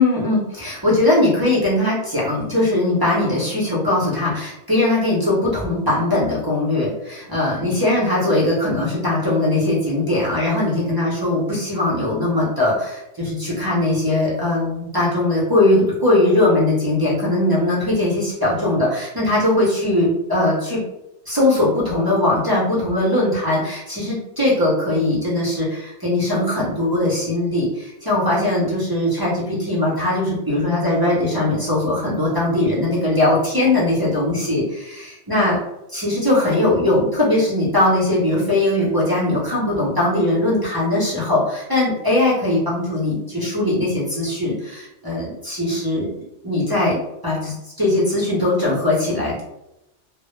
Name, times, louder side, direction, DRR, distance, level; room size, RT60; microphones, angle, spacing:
voice 1, 0.0-20.8 21.3-35.6 35.9-46.1 46.4-49.4, left 1 dB, 30° right, -6 dB, 0.4 m, -20 dB
2.0 x 2.0 x 3.0 m, 0.87 s
omnidirectional pair, 1.2 m